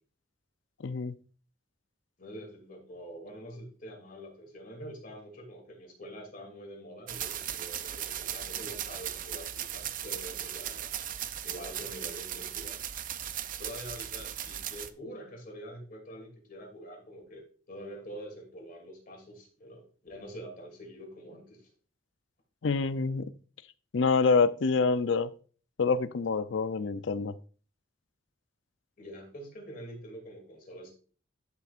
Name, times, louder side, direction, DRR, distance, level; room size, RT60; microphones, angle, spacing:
voice 1, 0.8-1.1 22.6-23.3 23.9-25.3 25.8-27.3, left 4 dB, 70° left, 14 dB, 0.5 m, -26 dB
voice 2, 2.2-11.0 11.4-12.8 13.6-21.7 29.0-30.9, equal, 45° left, 1 dB, 2.7 m, -45 dB
sound 1, 7.1-14.9, right 10 dB, 45° right, 0.5 m, -37 dB
11.5 x 6.9 x 2.5 m, 0.41 s
head